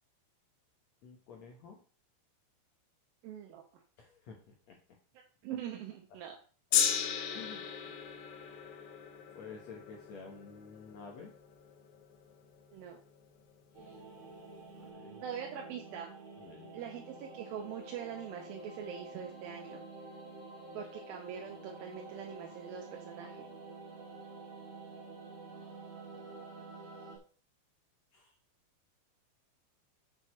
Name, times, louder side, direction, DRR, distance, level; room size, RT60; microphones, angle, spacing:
voice 1, 1.0-1.8 4.0-4.8 7.3-7.7 9.4-11.3 13.8-14.0 14.7-15.3 16.4-16.9 28.1-28.3, left 5 dB, 65° left, 0 dB, 1.8 m, -51 dB
voice 2, 3.2-3.6 5.4-6.4 12.7-13.0 15.2-16.1 16.7-19.8 20.7-23.5, right 8 dB, 75° right, 0 dB, 2.6 m, -43 dB
Gong, 6.7-13.1 13.9-14.0, left 8 dB, 90° left, 3.1 m, -36 dB
sound 1, 13.7-27.2, right 3 dB, 35° right, 2.7 m, -49 dB
7.2 x 6.4 x 4.3 m, 0.40 s
omnidirectional pair, 4.4 m